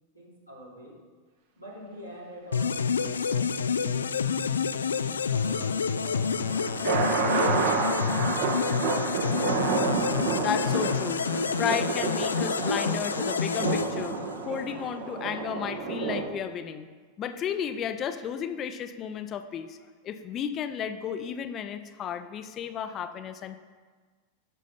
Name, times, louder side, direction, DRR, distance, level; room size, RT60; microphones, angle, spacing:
voice 1, 0.1-1.0 1.6-2.8 3.3-4.1 5.0-8.3, equal, 90° right, -6 dB, 3.0 m, -46 dB
sound 1, 2.5-14.6, left 6 dB, 70° left, 0.4 m, -28 dB
sound 2, 6.1-16.3, right 4 dB, 50° right, 1.3 m, -29 dB
voice 2, 10.4-11.2 11.6-14.2 14.4-16.9 17.2-19.8 20.0-23.6, left 8 dB, 30° left, 10 dB, 0.6 m, -33 dB
11.0 x 6.2 x 5.6 m, 1.5 s
figure-of-eight pair, 90°, 0 cm